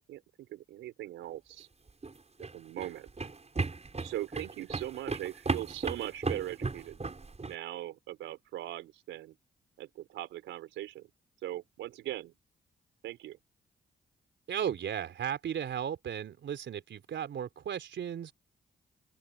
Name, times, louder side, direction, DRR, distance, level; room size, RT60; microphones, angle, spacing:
voice 1, 0.1-1.7 2.5-3.3 4.0-7.0 7.4-9.3 9.8-11.1 11.4-12.3 13.0-13.4, right 14 dB, 85° right, 4.8 m, -40 dB
sound 1, 1.9-7.5, right 3 dB, 35° right, 7.1 m, -35 dB
voice 2, 14.5-18.3, right 9 dB, 70° right, 3.8 m, -35 dB
open air
supercardioid pair, 50°, 19 cm